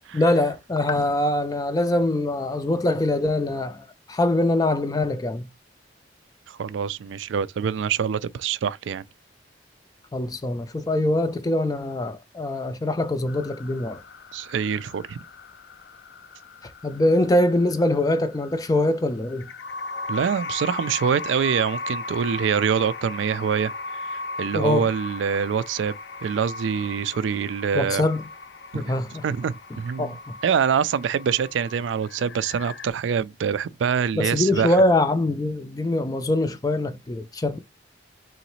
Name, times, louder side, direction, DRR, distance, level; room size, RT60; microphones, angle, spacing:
voice 1, 0.1-5.5 10.1-14.0 16.6-19.5 24.5-24.9 27.7-28.2 28.7-29.2 30.0-30.2 34.1-37.6, left 1 dB, 20° left, 0.3 m, -23 dB
voice 2, 6.5-9.0 14.3-15.2 20.1-28.0 28.7-28.9 29.2-30.2 30.4-34.8, right 7 dB, 90° right, 0.3 m, -25 dB
sound 1, 13.3-32.9, left 3 dB, 70° left, 0.6 m, -38 dB
3.9 x 3.1 x 3.0 m
head